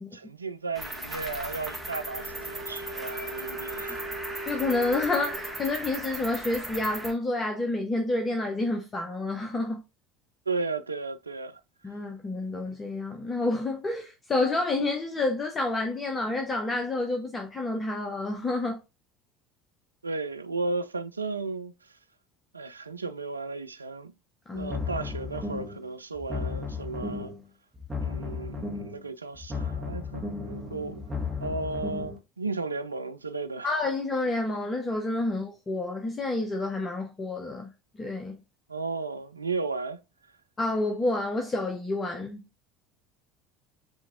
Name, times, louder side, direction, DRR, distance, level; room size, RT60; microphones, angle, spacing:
voice 1, 0.1-4.4 10.5-11.6 20.0-21.7 22.5-24.1 24.5-27.3 28.0-31.0 31.4-33.7 38.7-40.0, right 3 dB, 85° right, 0.3 m, -34 dB
Cricket, 0.7-7.1, right 1 dB, 5° right, 1.7 m, -37 dB
Wind instrument woodwind instrument, 1.6-6.0, right 3 dB, 55° right, 1.2 m, -40 dB
voice 2, 4.5-9.8 11.8-18.8 24.5-24.7 33.6-38.4 40.6-42.4, left 2 dB, 25° left, 0.7 m, -29 dB
sound 1, 24.5-25.8 26.1-27.4 27.7-29.0 29.3-32.2, left 4 dB, 20° right, 1.5 m, -34 dB
7.3 x 2.9 x 2.5 m
figure-of-eight pair, 65°, 0 cm